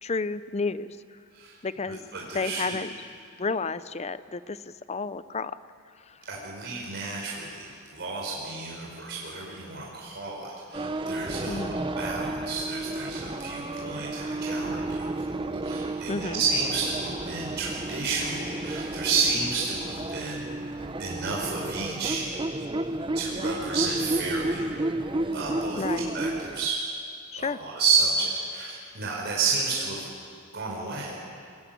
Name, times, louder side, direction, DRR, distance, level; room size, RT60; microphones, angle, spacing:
voice 1, 0.0-0.9 1.6-2.0 2.3-2.9 3.4-4.6 4.9-5.5 11.5-11.8 16.1-16.4 25.8-26.1 27.3-27.6, left 4 dB, 30° left, 15 dB, 0.6 m, -31 dB
voice 2, 1.9-2.8 6.3-20.4 21.0-22.3 23.1-24.7 25.3-26.8 27.4-30.1 30.5-31.2, right 4 dB, 55° right, -3 dB, 5.0 m, -31 dB
sound 1, 10.7-26.7, right 2 dB, 25° right, 0.8 m, -32 dB
23.0 x 20.5 x 9.2 m, 2.3 s
head